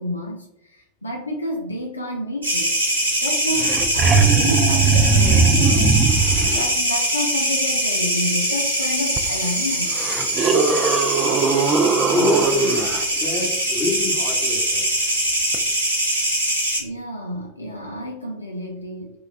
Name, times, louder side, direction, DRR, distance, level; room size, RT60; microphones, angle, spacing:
voice 1, 0.0-2.7 3.2-10.0 16.8-19.1, left 1 dB, 80° left, 0 dB, 0.4 m, -30 dB
sound 1, 2.4-16.8, right 1 dB, 80° right, 0.9 m, -22 dB
sound 2, 3.3-3.4 3.5-6.7 9.2-9.3 9.9-13.0 15.5-15.6, right 5 dB, 25° right, 0.4 m, -19 dB
voice 2, 12.1-15.2, left 3 dB, 30° left, -1 dB, 1.0 m, -26 dB
4.9 x 2.3 x 2.2 m, 0.87 s
figure-of-eight pair, 90°, 0 cm